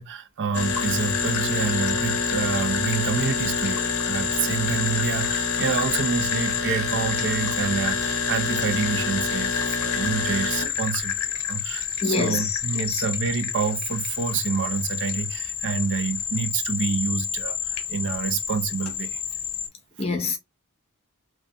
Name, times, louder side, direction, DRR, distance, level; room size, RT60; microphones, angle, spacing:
voice 1, 0.0-19.2, right 5 dB, 55° right, 0.4 m, -28 dB
sound 1, 0.5-19.7, left 6 dB, 80° left, 0.6 m, -27 dB
voice 2, 12.0-12.6 12.9-13.0 20.0-20.4, left 3 dB, 25° left, 0.4 m, -26 dB
2.5 x 2.2 x 2.6 m
head